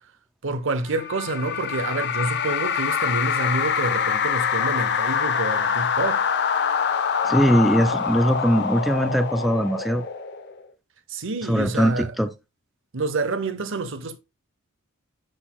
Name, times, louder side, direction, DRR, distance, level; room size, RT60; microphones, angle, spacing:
voice 1, 0.4-6.3 11.1-12.1 12.9-14.2, right 3 dB, 65° right, 0.9 m, -28 dB
sound 1, 0.9-10.6, left 7 dB, 55° left, 0.8 m, -25 dB
voice 2, 7.2-10.0 11.4-12.3, equal, ahead, 0.4 m, -21 dB
12.0 x 4.0 x 2.3 m
head